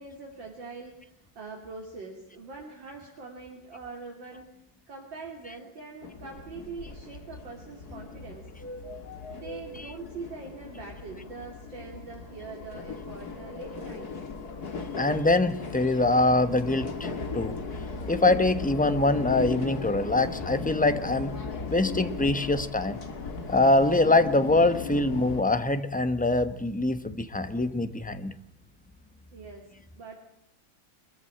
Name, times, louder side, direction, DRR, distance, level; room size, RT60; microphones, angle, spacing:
voice 1, 0.0-4.6 4.9-8.5 9.3-14.1 29.3-30.2, right 4 dB, 70° right, 0 dB, 3.5 m, -43 dB
sound 1, 6.0-25.4, left 4 dB, 50° left, 2.6 m, -37 dB
voice 2, 15.0-17.5 18.1-21.3 21.7-23.0 23.5-28.3, left 2 dB, 5° left, 11 dB, 0.8 m, -24 dB
23.5 x 14.5 x 8.8 m, 0.82 s
omnidirectional pair, 2.1 m